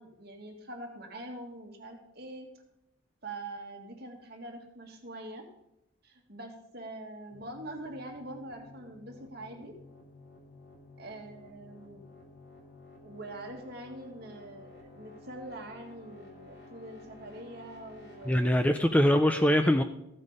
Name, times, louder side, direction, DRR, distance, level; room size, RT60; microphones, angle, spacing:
voice 1, 0.0-2.5 3.2-5.5 6.0-9.7 11.0-12.0 13.0-18.7, right 1 dB, 50° right, 2 dB, 2.0 m, -44 dB
sound 1, 7.3-18.4, left 3 dB, 50° left, 2.9 m, -53 dB
voice 2, 18.3-19.8, equal, 5° left, 8 dB, 0.4 m, -23 dB
14.5 x 8.2 x 5.0 m, 0.83 s
head